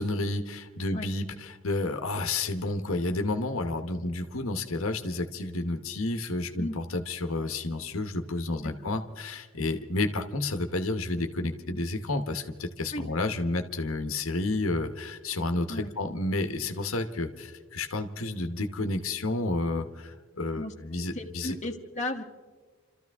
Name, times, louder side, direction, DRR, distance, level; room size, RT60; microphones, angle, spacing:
voice 1, 0.0-21.5, left 2 dB, 90° left, 7 dB, 1.1 m, -31 dB
voice 2, 8.6-8.9 12.9-13.0 15.7-15.9 20.6-20.7 21.1-22.2, left 1 dB, 35° left, 2 dB, 1.2 m, -35 dB
30.0 x 13.5 x 3.5 m, 1.4 s
head